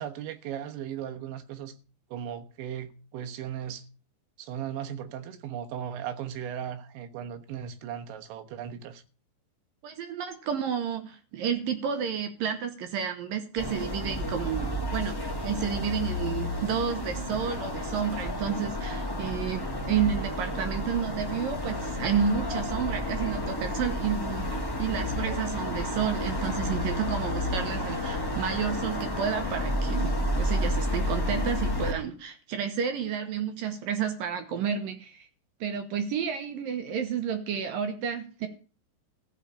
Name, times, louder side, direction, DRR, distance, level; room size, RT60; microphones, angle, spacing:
voice 1, 0.0-1.7 2.1-3.9 4.4-9.0, right 9 dB, 90° right, 3.6 m, -37 dB
voice 2, 9.8-35.3 35.6-38.5, right 7 dB, 65° right, 2.5 m, -31 dB
sound 1, 13.6-31.9, left 1 dB, 20° left, 0.6 m, -31 dB
15.5 x 5.5 x 10.0 m
omnidirectional pair, 5.1 m